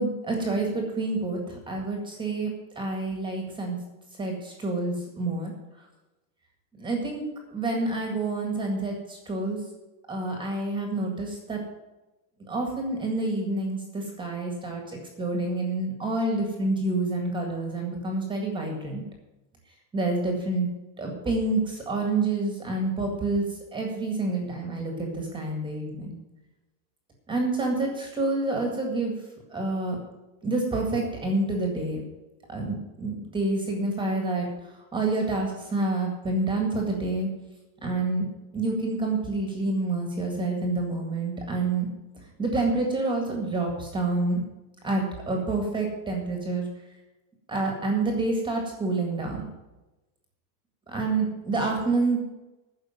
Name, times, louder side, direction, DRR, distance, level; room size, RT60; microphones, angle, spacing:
voice 1, 0.0-1.4 1.7-3.8 4.2-5.5 6.8-7.3 7.5-9.6 10.1-11.6 12.5-19.0 19.9-20.7 21.0-23.4 23.7-26.2 27.3-29.1 29.5-30.0 30.4-32.0 32.5-34.5 34.9-37.3 37.8-38.3 38.5-41.9 42.4-44.4 44.8-46.6 47.5-49.5 50.9-52.2, right 2 dB, 10° right, 2 dB, 1.9 m, -28 dB
10.5 x 6.6 x 9.1 m, 1.0 s
supercardioid pair, 175°, 48 cm